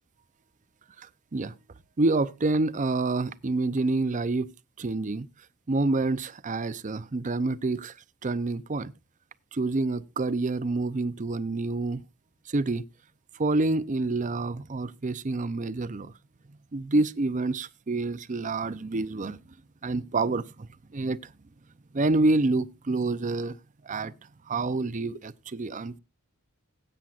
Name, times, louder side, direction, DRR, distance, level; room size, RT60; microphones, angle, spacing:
voice 1, 2.0-4.5 4.8-5.3 5.7-7.9 8.2-8.9 9.5-12.0 12.5-12.8 13.4-16.1 16.7-19.4 19.8-20.7 20.9-21.2 21.9-23.6 23.9-24.1 24.5-26.0, right 2 dB, 35° right, 0.5 m, -27 dB
19.0 x 8.9 x 2.4 m
head